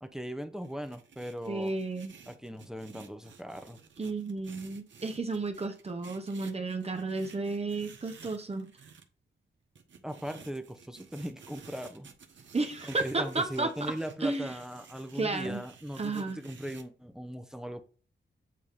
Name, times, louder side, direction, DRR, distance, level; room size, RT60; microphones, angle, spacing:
voice 1, 0.0-1.7 2.3-3.8 10.0-12.1 12.8-17.8, equal, 5° right, 0.8 m, -39 dB
sound 1, 0.6-9.0 9.8-16.8, right 6 dB, 75° right, 1.0 m, -53 dB
voice 2, 1.5-2.1 4.0-8.7 12.5-13.9 14.2-14.6 15.1-15.6 16.0-16.4, right 3 dB, 30° right, 0.9 m, -32 dB
8.5 x 2.9 x 5.1 m
wide cardioid pair, 85°, 19 cm